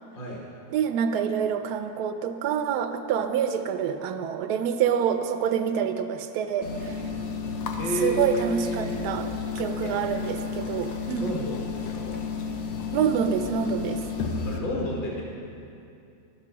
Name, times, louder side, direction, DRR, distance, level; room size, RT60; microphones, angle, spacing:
voice 1, 0.7-7.0 8.0-9.3 9.5-11.4 12.9-14.0, right 8 dB, 70° right, 7 dB, 1.0 m, -27 dB
sound 1, 6.6-14.6, left 5 dB, 80° left, 1.6 m, -32 dB
voice 2, 7.8-9.0 9.8-9.9 11.2-12.2 14.4-15.2, left 1 dB, 30° left, -3 dB, 1.2 m, -31 dB
12.0 x 6.7 x 6.1 m, 2.7 s
omnidirectional pair, 2.1 m